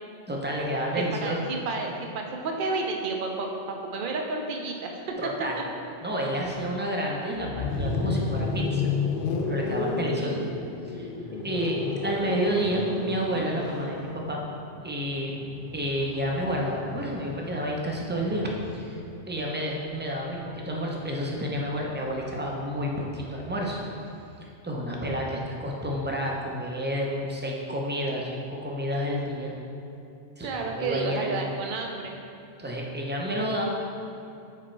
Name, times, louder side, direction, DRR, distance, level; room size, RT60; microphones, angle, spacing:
voice 1, 0.3-1.5 5.2-5.6 6.0-8.9 9.4-10.4 10.9-11.1 11.4-11.8 12.0-14.4 14.8-15.3 15.7-18.5 18.7-19.0 19.3-23.8 24.4-29.5 30.4-31.5 32.6-33.6, equal, 15° right, -2 dB, 0.5 m, -30 dB
voice 2, 1.2-5.2 10.1-10.4 30.4-32.2, right 3 dB, 60° right, 2 dB, 0.7 m, -31 dB
sound 1, 7.3-19.3 20.6-24.2, left 4 dB, 65° left, 0.7 m, -33 dB
5.1 x 4.2 x 4.4 m, 2.7 s
omnidirectional pair, 1.1 m